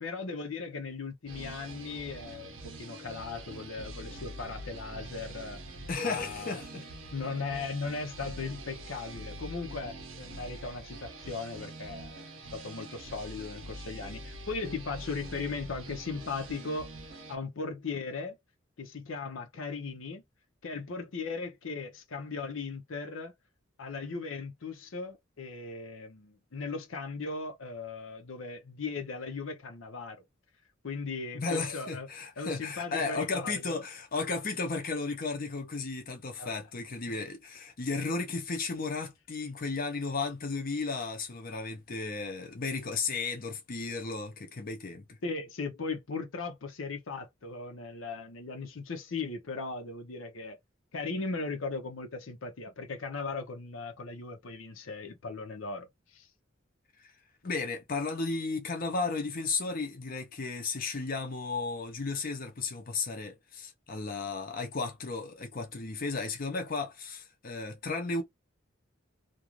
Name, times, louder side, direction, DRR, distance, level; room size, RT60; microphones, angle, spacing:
voice 1, 0.0-5.6 6.0-6.6 7.1-12.2 12.5-16.9 17.3-18.4 18.8-20.2 20.6-23.3 23.8-30.2 30.8-32.1 32.4-33.8 36.4-36.5 37.1-37.2 45.2-50.6 50.9-55.9 56.1-56.3, left 4 dB, 80° left, 0.7 m, -38 dB
sound 1, 1.3-17.4, right 1 dB, 80° right, 0.8 m, -44 dB
voice 2, 5.9-6.9 31.3-45.2 57.0-57.1 57.4-68.2, left 4 dB, 45° left, 0.6 m, -34 dB
2.5 x 2.3 x 3.0 m
head